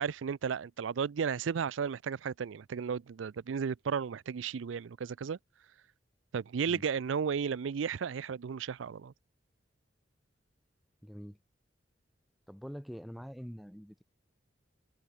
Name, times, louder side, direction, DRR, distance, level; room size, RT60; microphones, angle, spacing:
voice 1, 0.0-5.4 6.3-9.1, right 6 dB, 85° right, 0.4 m, -34 dB
voice 2, 11.0-11.4 12.5-14.0, equal, ahead, 1.0 m, -45 dB
open air
head